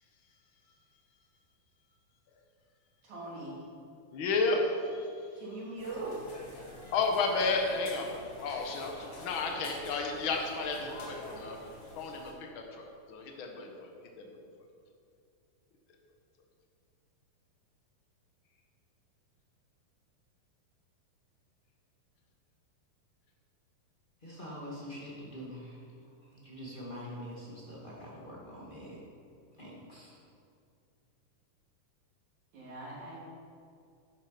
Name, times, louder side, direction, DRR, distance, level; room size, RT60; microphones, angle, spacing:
voice 1, 3.0-3.6 5.4-6.3 32.5-33.2, right 2 dB, 55° right, -6 dB, 4.2 m, -41 dB
voice 2, 4.1-5.3 6.9-8.1 8.4-11.6 11.9-13.9 14.2-14.4, left 3 dB, 60° left, 2 dB, 1.3 m, -32 dB
sound 1, 5.8-12.3, left 2 dB, 45° left, 2.9 m, -47 dB
voice 3, 24.2-29.0 29.6-30.2, equal, 20° left, -6 dB, 1.5 m, -45 dB
11.5 x 10.0 x 5.2 m, 2.4 s
omnidirectional pair, 4.1 m